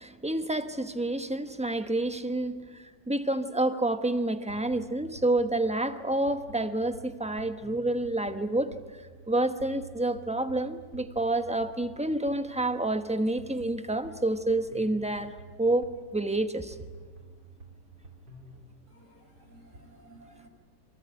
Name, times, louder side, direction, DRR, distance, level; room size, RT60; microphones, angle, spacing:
voice 1, 0.0-8.7 9.3-16.8, right 2 dB, 5° right, 0.8 m, -29 dB
sound 1, 4.5-18.7, right 3 dB, 75° right, 4.5 m, -50 dB
voice 2, 18.9-20.5, right 1 dB, 40° right, 5.6 m, -54 dB
27.5 x 23.5 x 9.2 m
omnidirectional pair, 1.9 m